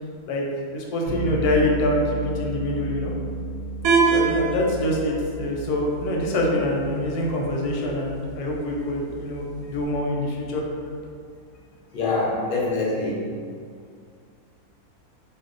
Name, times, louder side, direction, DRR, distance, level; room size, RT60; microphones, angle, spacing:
voice 1, 0.7-3.1 4.1-10.6, left 1 dB, 85° left, -2 dB, 1.1 m, -25 dB
sound 1, 1.1-11.1, right 2 dB, 55° right, 0.5 m, -35 dB
Sylenth Beep, 3.8-9.8, right 4 dB, 75° right, 1.0 m, -28 dB
voice 2, 11.9-13.3, left 3 dB, 55° left, -5 dB, 0.6 m, -25 dB
2.7 x 2.0 x 3.8 m, 2.1 s
omnidirectional pair, 1.6 m